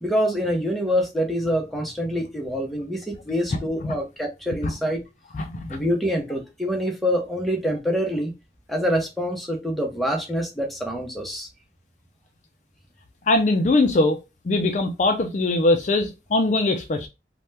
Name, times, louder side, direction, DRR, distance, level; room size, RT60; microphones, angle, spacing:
voice 1, 0.0-5.0 5.7-8.3 8.7-11.5, equal, ahead, 0.6 m, -25 dB
voice 2, 5.3-5.8 13.3-17.1, left 2 dB, 40° left, 0.3 m, -22 dB
2.8 x 2.1 x 3.3 m
head